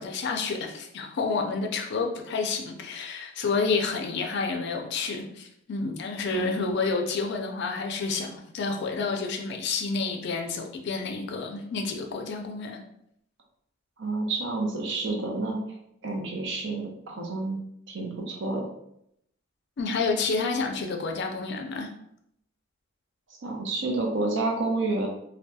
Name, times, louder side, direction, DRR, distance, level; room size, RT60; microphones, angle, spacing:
voice 1, 0.0-12.8 19.8-21.9, left 4 dB, 55° left, 3 dB, 0.4 m, -29 dB
voice 2, 6.3-6.8 14.0-15.6 16.0-17.6 17.9-18.6 23.4-25.1, right 2 dB, 65° right, 0 dB, 0.6 m, -29 dB
2.7 x 2.2 x 2.2 m, 0.75 s
head